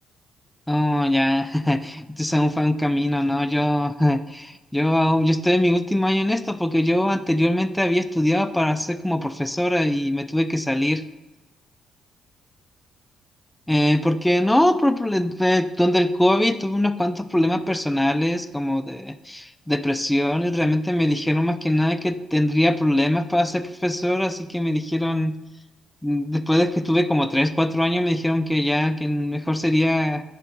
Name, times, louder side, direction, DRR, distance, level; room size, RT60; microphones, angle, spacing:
voice 1, 0.7-11.0 13.7-25.4 26.0-30.2, left 1 dB, 5° left, 11 dB, 0.5 m, -22 dB
10.5 x 3.8 x 6.0 m, 1.1 s
cardioid pair, 90°, 0 cm